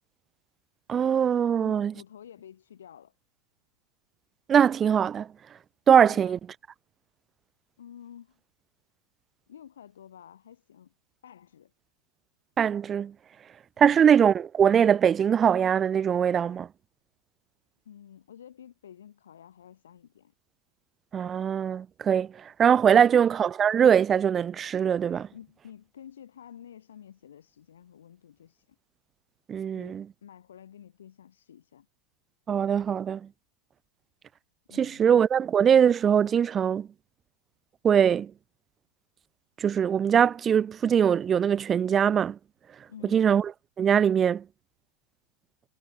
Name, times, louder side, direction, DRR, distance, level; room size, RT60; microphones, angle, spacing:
voice 1, 0.9-1.9 4.5-5.3 5.9-6.4 12.6-13.1 13.8-16.7 21.1-22.3 22.6-25.3 29.5-30.0 32.5-33.2 34.8-36.9 37.8-38.3 39.6-42.4 43.1-43.4 43.8-44.4, right 8 dB, 25° right, 0.9 m, -22 dB
voice 2, 1.6-3.1 6.1-6.4 7.8-8.4 9.5-10.9 11.2-11.7 13.8-14.0 17.8-20.3 22.9-23.1 25.3-28.8 29.7-31.9 34.7-35.1 42.9-43.3, left 9 dB, 65° left, 6.8 m, -50 dB
figure-of-eight pair, 90°, 0 cm